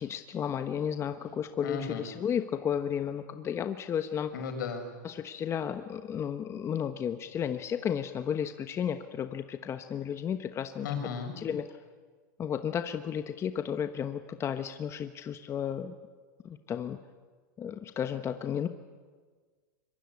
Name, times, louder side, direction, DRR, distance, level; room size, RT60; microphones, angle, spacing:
voice 1, 0.0-4.3 5.0-10.9 11.4-11.7 12.4-15.9 16.4-17.0 17.6-18.7, left 8 dB, 25° left, 8 dB, 1.2 m, -33 dB
voice 2, 1.6-2.1 4.3-4.9 10.8-11.3, left 6 dB, 75° left, 5 dB, 6.5 m, -35 dB
26.0 x 23.5 x 9.8 m, 1.5 s
hypercardioid pair, 125°, 10 cm